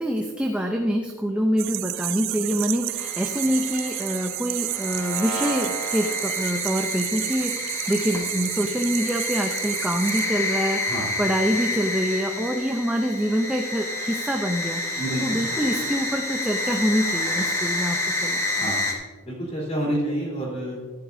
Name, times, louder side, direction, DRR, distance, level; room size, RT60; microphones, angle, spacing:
voice 1, 0.0-18.7, equal, 5° right, 2 dB, 0.6 m, -26 dB
sound 1, 1.6-10.3, right 17 dB, 60° right, 0.3 m, -31 dB
sound 2, 3.0-18.9, left 1 dB, 15° left, 1.4 m, -29 dB
voice 2, 15.0-15.4 18.6-18.9 19.2-20.8, equal, 30° left, -4 dB, 3.7 m, -28 dB
14.0 x 10.5 x 2.7 m, 1.4 s
head